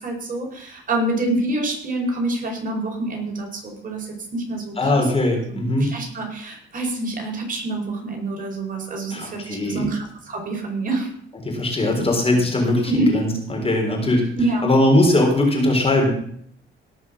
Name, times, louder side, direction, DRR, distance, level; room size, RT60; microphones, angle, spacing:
voice 1, 0.0-5.0 5.5-11.1 12.9-13.1 14.4-14.7, right 2 dB, 45° right, 1 dB, 5.0 m, -26 dB
voice 2, 4.8-5.9 9.1-9.9 11.4-14.2 14.6-16.1, left 1 dB, 30° left, 1 dB, 4.3 m, -20 dB
17.5 x 6.0 x 6.3 m, 0.65 s
cardioid pair, 90°, 20 cm